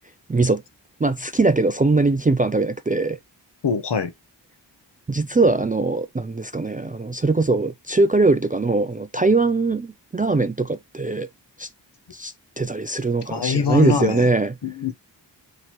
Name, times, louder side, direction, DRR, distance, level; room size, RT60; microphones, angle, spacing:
voice 1, 0.3-0.6 1.0-3.2 5.1-11.3 11.6-11.7 12.1-14.5, right 3 dB, 20° right, 0.3 m, -21 dB
voice 2, 3.6-4.1 13.3-14.3 14.6-14.9, left 6 dB, 65° left, 0.8 m, -23 dB
3.1 x 2.9 x 4.2 m
wide cardioid pair, 45°, 45 cm